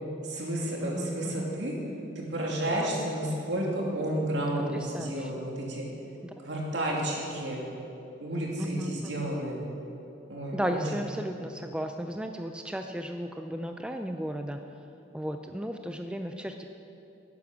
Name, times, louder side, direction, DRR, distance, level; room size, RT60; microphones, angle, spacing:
voice 1, 0.2-1.7 2.2-5.9 6.4-7.6 8.2-9.6 10.3-10.8, right 1 dB, 70° right, -2 dB, 2.5 m, -31 dB
voice 2, 0.8-1.5 2.7-3.1 4.7-5.5 6.2-6.3 8.6-9.3 10.5-14.8 15.1-16.6, equal, 5° right, 5 dB, 0.4 m, -35 dB
11.0 x 9.5 x 7.1 m, 2.8 s
head